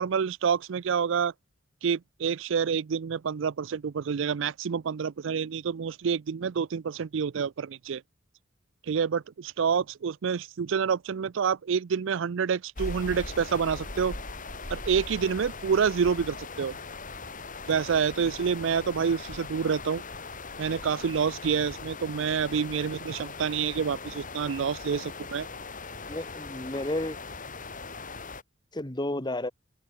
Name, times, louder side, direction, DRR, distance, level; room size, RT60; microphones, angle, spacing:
voice 1, 0.0-1.3 1.8-8.0 8.9-14.1 14.7-16.8 17.7-20.0 20.6-25.5, right 6 dB, 65° right, 0.4 m, -28 dB
sound 1, 12.8-28.4, left 3 dB, 40° left, 6.1 m, -40 dB
voice 2, 26.1-27.2 28.7-29.5, left 1 dB, 20° left, 1.9 m, -32 dB
head